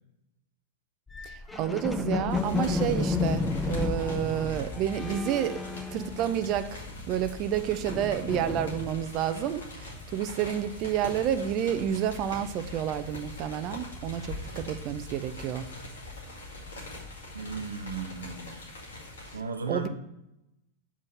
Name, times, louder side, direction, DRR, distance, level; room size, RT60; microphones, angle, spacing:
sound 1, 1.1-6.7 7.0-9.2, left 4 dB, 10° left, 0.6 m, -32 dB
voice 1, 1.2-5.6 5.9-6.8 7.1-15.7 19.7-19.9, right 10 dB, 40° right, 12 dB, 0.6 m, -30 dB
sound 2, 2.3-19.4, left 2 dB, 65° left, 2.2 m, -42 dB
voice 2, 17.3-18.6 19.3-19.9, right 4 dB, 75° right, 6 dB, 0.9 m, -35 dB
7.5 x 4.8 x 5.6 m, 0.86 s
figure-of-eight pair, 90°, 0 cm